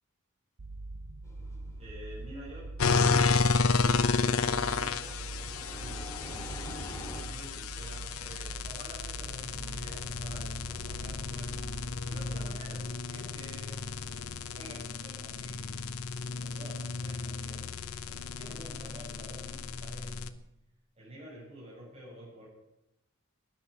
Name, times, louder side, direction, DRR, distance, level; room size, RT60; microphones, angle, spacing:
sound 1, 0.6-12.7, right 2 dB, 80° right, 0.8 m, -43 dB
sound 2, 1.2-2.3 5.2-7.2, left 1 dB, 15° left, 2.3 m, -44 dB
voice 1, 1.8-6.5 7.2-11.7 12.1-13.8 14.6-15.8 16.4-20.3 20.9-22.5, equal, 30° right, -6 dB, 6.8 m, -49 dB
sound 3, 2.8-20.3, left 4 dB, 80° left, 0.9 m, -32 dB
12.5 x 10.5 x 8.4 m, 0.89 s
head